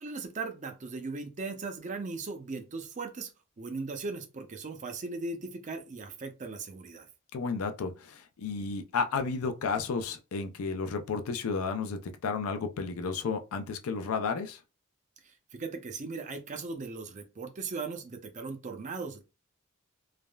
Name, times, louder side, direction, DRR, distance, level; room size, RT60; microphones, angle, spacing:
voice 1, 0.0-3.3 3.6-7.1 15.2-19.2, right 4 dB, 35° right, 0.5 m, -38 dB
voice 2, 7.3-14.6, left 5 dB, 90° left, 0.4 m, -32 dB
3.3 x 2.0 x 2.2 m
head